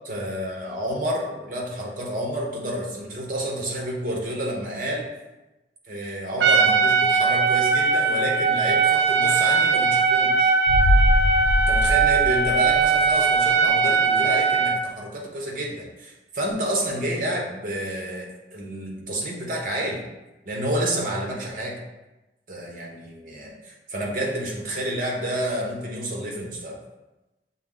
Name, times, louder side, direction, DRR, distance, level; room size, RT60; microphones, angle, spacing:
voice 1, 0.0-5.1 5.9-10.5 11.7-20.0 20.5-21.8 22.5-26.8, right 1 dB, 50° right, -1 dB, 0.8 m, -29 dB
Trumpet, 6.4-14.8, right 5 dB, 80° right, 0.4 m, -20 dB
sound 1, 10.7-13.4 13.7-13.8, left 1 dB, 75° left, 0.3 m, -23 dB
5.9 x 2.0 x 3.7 m, 1.0 s
head